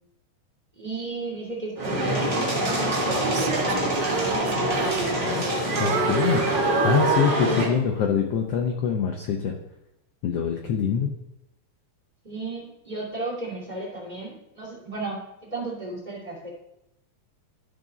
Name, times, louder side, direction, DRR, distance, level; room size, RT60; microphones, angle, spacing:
voice 1, 0.8-5.1 12.2-16.5, right 2 dB, 15° right, -4 dB, 1.9 m, -35 dB
sound 1, 1.8-7.7, right 1 dB, 50° right, 0.6 m, -24 dB
Female singing, 3.2-5.5 5.8-7.8 8.3-8.6, right 7 dB, 90° right, 1.5 m, -31 dB
voice 2, 5.8-6.4 6.8-9.5 10.2-11.1, left 7 dB, 80° left, 2 dB, 1.4 m, -24 dB
13.0 x 4.9 x 4.0 m, 0.86 s
omnidirectional pair, 3.8 m